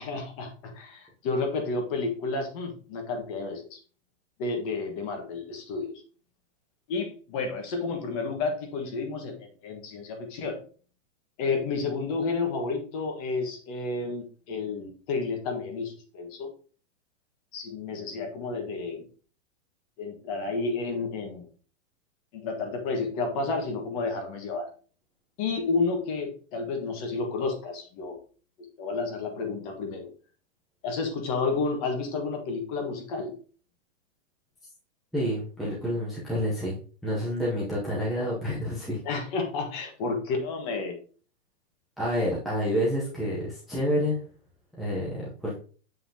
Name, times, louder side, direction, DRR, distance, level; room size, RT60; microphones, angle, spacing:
voice 1, 0.0-3.8 4.4-6.0 6.9-10.6 11.4-16.5 17.5-19.1 20.0-21.5 22.3-24.7 25.4-28.1 28.8-30.1 30.8-33.3 39.0-40.9, left 4 dB, 30° left, 4 dB, 1.4 m, -31 dB
voice 2, 35.1-36.8 37.0-39.0 42.0-44.2 44.8-45.5, equal, ahead, -7 dB, 0.7 m, -28 dB
7.5 x 5.4 x 2.8 m, 0.41 s
supercardioid pair, 175°, 37 cm